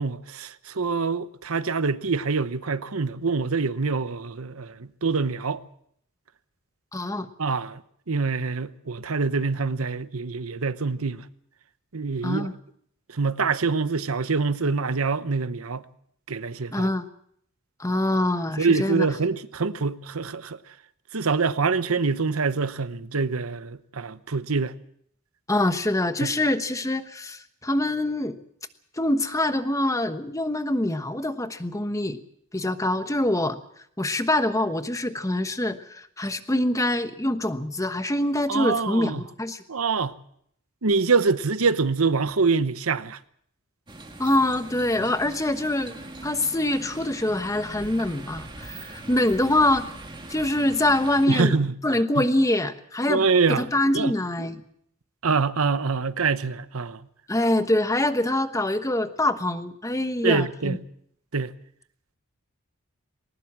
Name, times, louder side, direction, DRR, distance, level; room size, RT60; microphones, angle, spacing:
voice 1, 0.0-5.6 7.4-7.8 8.1-11.3 11.9-12.5 13.1-15.8 16.3-16.9 18.6-20.6 21.1-24.7 26.2-26.3 38.5-39.2 39.7-40.1 40.8-43.2 51.3-51.7 52.2-52.3 53.1-53.6 53.9-54.1 55.2-57.0 60.2-60.8 61.3-61.5, right 4 dB, 80° right, 1.0 m, -25 dB
voice 2, 6.9-7.3 12.2-12.5 16.7-17.0 17.8-19.1 25.5-28.4 29.0-32.2 32.5-33.6 34.0-39.6 44.2-46.0 46.2-49.9 50.3-54.6 57.3-60.8, left 1 dB, 15° left, 1.2 m, -25 dB
sound 1, 43.9-51.3, right 2 dB, 20° right, 2.2 m, -41 dB
20.0 x 19.0 x 7.4 m
head